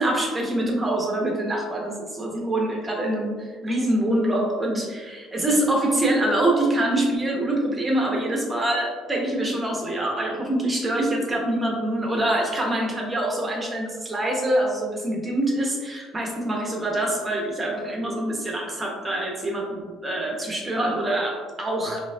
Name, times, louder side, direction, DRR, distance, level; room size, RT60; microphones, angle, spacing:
voice 1, 0.0-22.0, right 1 dB, 15° right, -1 dB, 0.8 m, -25 dB
5.1 x 2.5 x 2.3 m, 1.4 s
cardioid pair, 130°, 0 cm